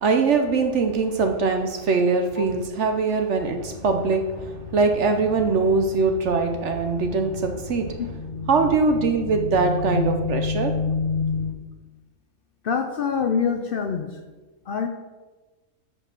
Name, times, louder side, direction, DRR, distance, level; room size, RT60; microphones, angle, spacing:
voice 1, 0.0-7.9 8.5-10.7, right 4 dB, 60° right, 5 dB, 1.0 m, -22 dB
sound 1, 3.4-11.5, left 5 dB, 40° left, 1.2 m, -31 dB
voice 2, 12.6-14.2 14.7-14.9, left 6 dB, 55° left, 6 dB, 0.6 m, -25 dB
7.6 x 4.9 x 6.6 m, 1.2 s
omnidirectional pair, 1.5 m